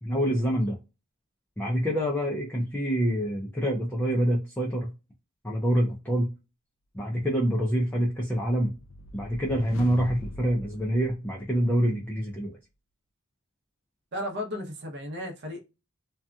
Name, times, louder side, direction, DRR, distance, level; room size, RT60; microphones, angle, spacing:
voice 1, 0.0-0.8 1.6-4.9 5.4-6.3 6.9-8.7 9.1-12.5, equal, 10° left, 0.5 m, -26 dB
sound 1, 8.6-11.8, left 2 dB, 70° left, 0.3 m, -42 dB
voice 2, 14.1-15.6, left 1 dB, 55° right, 0.7 m, -34 dB
2.7 x 2.3 x 2.2 m
head